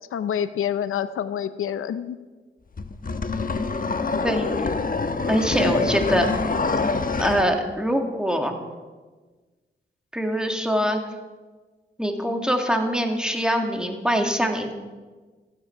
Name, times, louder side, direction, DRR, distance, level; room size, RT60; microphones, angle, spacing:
voice 1, 0.0-2.2, left 9 dB, 90° left, 13 dB, 0.6 m, -27 dB
sound 1, 2.8-7.5, left 4 dB, 45° left, 1.1 m, -25 dB
voice 2, 4.2-4.7 5.3-6.3 7.2-8.6 10.1-11.0 12.0-14.7, equal, 5° right, 3 dB, 2.2 m, -23 dB
15.5 x 9.8 x 6.0 m, 1.3 s
cardioid pair, 55°, 21 cm